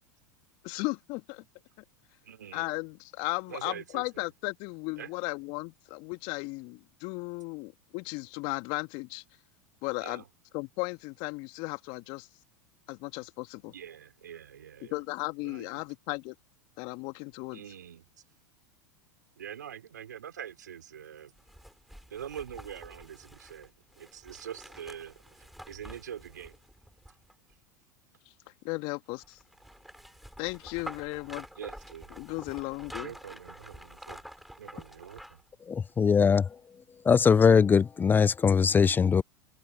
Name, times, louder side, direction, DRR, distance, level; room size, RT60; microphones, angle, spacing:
voice 1, 0.6-1.4 2.5-9.2 9.8-10.2 10.5-12.3 12.9-13.7 14.8-16.4 16.8-17.6 28.6-29.4 30.4-31.5 32.2-33.1, left 27 dB, 55° left, 1.9 m, -35 dB
voice 2, 2.2-2.7 3.5-4.3 5.0-5.1 10.0-10.3 13.7-15.0 15.4-15.8 17.5-18.1 19.4-21.3 22.1-26.5 31.6-32.1 33.0-34.2 34.6-35.4, right 9 dB, 80° right, 5.5 m, -44 dB
sound 1, 21.4-27.5 29.2-35.5 35.9-36.0, equal, ahead, 7.8 m, -48 dB
voice 3, 35.7-36.4 37.1-39.2, left 6 dB, 20° left, 0.6 m, -21 dB
hypercardioid pair, 85°, 10 cm